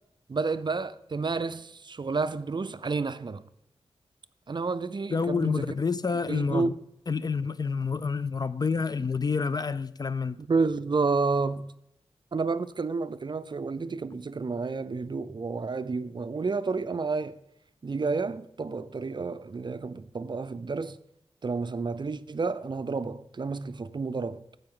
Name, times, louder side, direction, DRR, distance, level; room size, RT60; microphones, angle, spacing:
voice 1, 0.3-3.4 4.5-5.7 6.3-6.8 10.4-11.7 12.3-17.4 17.8-21.0 21.4-24.4, right 4 dB, 45° right, 0.5 m, -30 dB
voice 2, 5.1-6.7 7.1-10.4, left 5 dB, 40° left, 0.4 m, -28 dB
14.5 x 5.2 x 3.8 m
cardioid pair, 60°, 11 cm